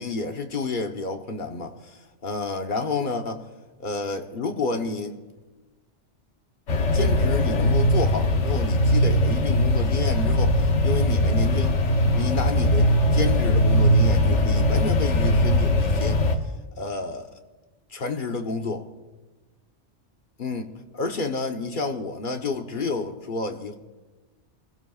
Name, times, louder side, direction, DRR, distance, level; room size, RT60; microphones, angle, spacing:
voice 1, 0.0-3.5 3.8-5.2 6.9-11.8 12.1-16.2 16.8-17.4 17.9-18.9 20.4-23.8, left 3 dB, 50° left, 1.2 m, -30 dB
sound 1, 6.7-16.4, left 1 dB, 90° left, 1.4 m, -20 dB
28.0 x 16.5 x 2.4 m
omnidirectional pair, 1.2 m